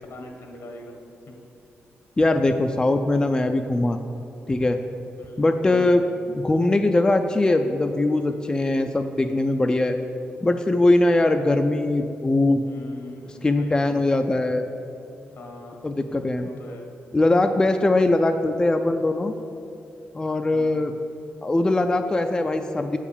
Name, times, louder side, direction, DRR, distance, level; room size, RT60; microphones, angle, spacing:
voice 1, 0.0-1.4 5.2-5.4 5.6-6.0 12.7-13.8 15.3-15.9 16.4-16.9 20.5-20.8, left 2 dB, 75° left, 2 dB, 1.4 m, -41 dB
voice 2, 2.2-4.0 4.5-4.8 5.4-6.0 6.3-10.0 10.4-12.6 13.4-14.7 15.8-16.5 17.1-19.3 20.1-20.9 21.4-23.0, left 2 dB, 20° left, 6 dB, 0.4 m, -21 dB
7.8 x 4.8 x 7.0 m, 2.7 s
cardioid pair, 90°, 4 cm